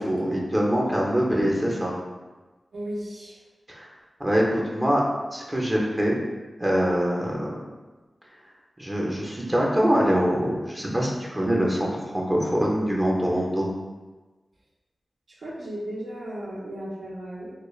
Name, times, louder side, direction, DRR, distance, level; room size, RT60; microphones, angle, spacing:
voice 1, 0.0-1.9 3.7-3.9 4.2-5.0 5.3-6.2 6.6-7.6 8.8-11.9 12.1-13.7, equal, 25° right, -3 dB, 0.6 m, -24 dB
voice 2, 2.7-3.4 15.4-17.5, right 1 dB, 80° right, -6 dB, 0.6 m, -35 dB
2.3 x 2.1 x 3.1 m, 1.2 s
cardioid pair, 55°, 0 cm